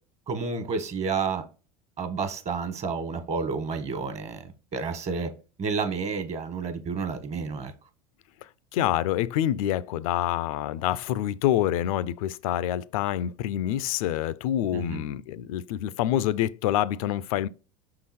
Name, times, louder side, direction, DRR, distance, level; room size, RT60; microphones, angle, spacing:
voice 1, 0.3-1.4 2.0-5.3 5.6-7.7 14.7-15.0, right 5 dB, 35° right, 1.3 m, -30 dB
voice 2, 8.7-17.5, left 12 dB, 75° left, 0.4 m, -27 dB
5.8 x 3.9 x 4.2 m
supercardioid pair, 100°, 18 cm